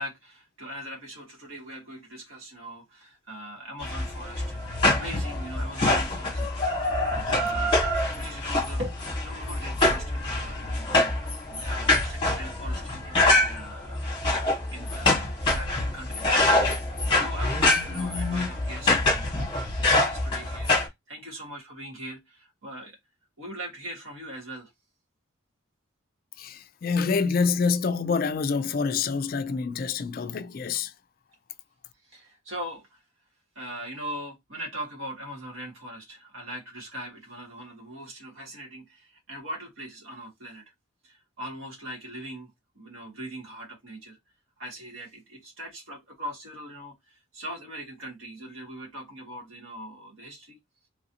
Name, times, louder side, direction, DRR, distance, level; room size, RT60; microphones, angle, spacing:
voice 1, 0.0-4.6 4.9-7.8 8.2-11.1 11.5-14.0 14.7-16.7 17.1-23.0 23.4-24.7 32.0-33.0 33.5-40.6 41.0-44.2 44.6-50.6, equal, 75° right, 1.5 m, -40 dB
sound 1, 3.8-20.9, left 2 dB, 25° left, 1.1 m, -25 dB
voice 2, 26.4-30.9, left 5 dB, 45° left, 0.3 m, -26 dB
3.0 x 2.7 x 2.7 m
head